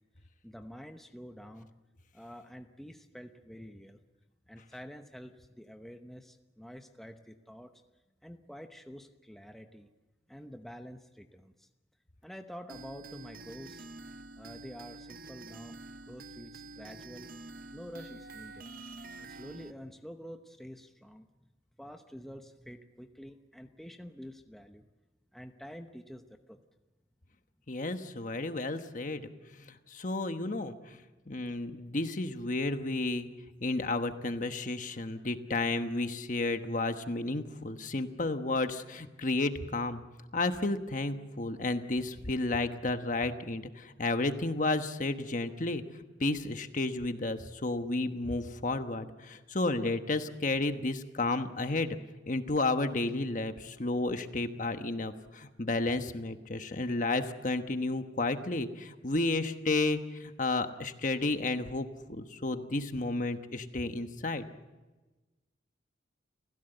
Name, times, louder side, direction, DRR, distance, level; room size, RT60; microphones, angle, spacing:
voice 1, 0.4-1.7 2.1-4.0 4.5-7.7 8.2-9.9 10.3-11.7 12.2-13.9 14.4-15.8 16.1-17.3 17.7-18.7 19.2-21.3 21.8-24.8 25.3-26.6, equal, ahead, 5 dB, 0.9 m, -48 dB
sound 1, 12.7-19.7, right 3 dB, 50° right, 0.8 m, -47 dB
voice 2, 27.7-33.3 33.6-40.0 40.3-45.8 46.2-52.0 52.2-64.5, left 2 dB, 45° left, 8 dB, 1.2 m, -32 dB
29.5 x 16.0 x 8.0 m, 1.2 s
head